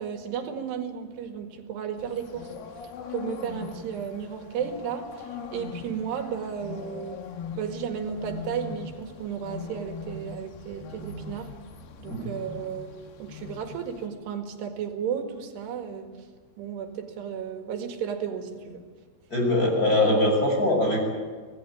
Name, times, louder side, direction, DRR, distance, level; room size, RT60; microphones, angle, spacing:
voice 1, 0.0-2.5 3.1-7.2 7.5-11.5 12.0-12.9 13.2-16.1 16.6-18.8, right 7 dB, 85° right, 5 dB, 4.1 m, -33 dB
sound 1, 2.0-14.1, left 5 dB, 75° left, 3.5 m, -41 dB
voice 2, 19.3-21.0, left 1 dB, 20° left, 1 dB, 6.5 m, -22 dB
26.0 x 18.0 x 8.7 m, 1.5 s
omnidirectional pair, 4.6 m